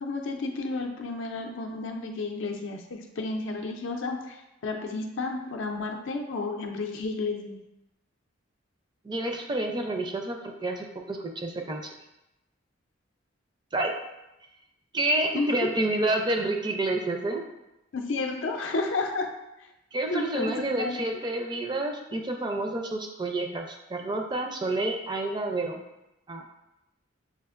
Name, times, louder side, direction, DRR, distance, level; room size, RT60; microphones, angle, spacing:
voice 1, 0.0-4.4 4.6-7.6 15.3-15.7 17.9-19.3 20.1-21.0, left 3 dB, 75° left, 3 dB, 0.5 m, -31 dB
voice 2, 9.0-11.9 13.7-13.9 14.9-17.4 19.9-25.8 26.3-26.4, right 2 dB, 20° right, 3 dB, 0.4 m, -29 dB
6.9 x 2.5 x 2.4 m, 0.92 s
head